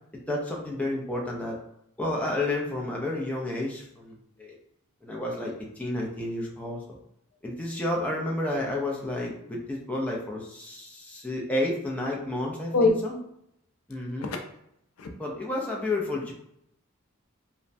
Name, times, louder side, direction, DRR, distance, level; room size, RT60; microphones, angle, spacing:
voice 1, 0.3-1.6 2.0-4.6 5.0-7.0 7.4-13.1 13.9-14.3 15.2-16.3, left 1 dB, 5° left, -3 dB, 0.4 m, -31 dB
voice 2, 12.7-12.9 14.2-14.4 15.0-15.1, left 3 dB, 75° left, 4 dB, 0.4 m, -22 dB
3.1 x 2.1 x 2.5 m, 0.76 s
head